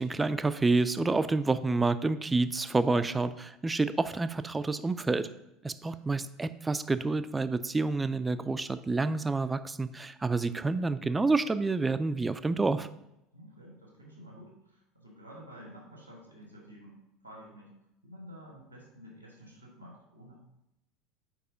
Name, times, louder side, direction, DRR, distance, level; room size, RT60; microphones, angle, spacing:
voice 1, 0.0-5.3 5.6-12.9, right 3 dB, 15° right, 13 dB, 0.3 m, -28 dB
voice 2, 13.3-17.8 18.0-20.4, equal, 90° right, -1 dB, 1.5 m, -50 dB
4.8 x 4.7 x 5.0 m, 0.86 s
figure-of-eight pair, 70°, 0 cm